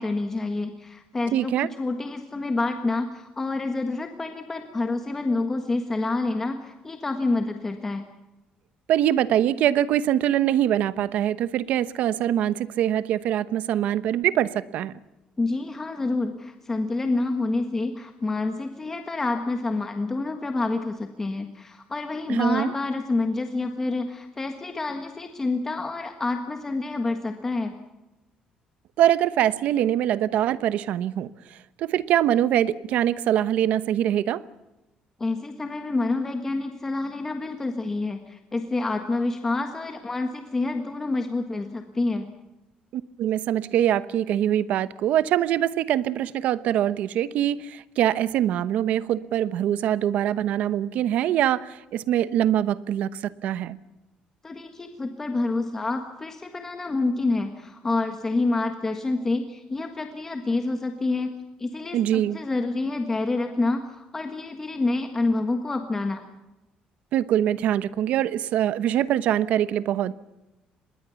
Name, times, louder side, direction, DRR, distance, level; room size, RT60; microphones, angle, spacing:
voice 1, 0.0-8.0 15.4-27.8 35.2-42.2 54.4-61.3 61.6-66.2, left 3 dB, 15° left, 1.5 m, -28 dB
voice 2, 1.3-1.7 8.9-14.9 22.3-22.7 29.0-34.4 42.9-53.8 61.9-62.4 67.1-70.1, right 11 dB, 65° right, 1.0 m, -23 dB
26.0 x 21.0 x 7.1 m
cardioid pair, 170°, 3 cm